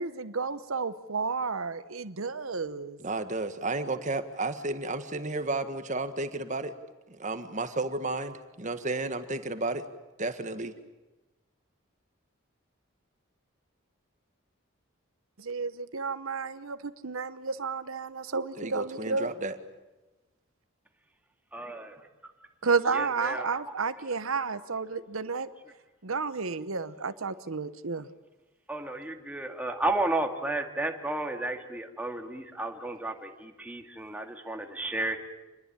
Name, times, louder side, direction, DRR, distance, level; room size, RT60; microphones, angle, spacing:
voice 1, 0.0-3.0 15.4-19.3 22.6-25.5 26.0-28.1, right 4 dB, 85° right, 12 dB, 1.0 m, -31 dB
voice 2, 3.0-6.7 7.1-9.9 10.2-10.7 18.6-19.6, right 2 dB, 35° right, 9 dB, 1.7 m, -32 dB
voice 3, 21.5-22.1 22.9-23.6 28.7-35.2, right 2 dB, 5° right, 3 dB, 2.2 m, -33 dB
27.0 x 21.0 x 8.9 m, 1.1 s
head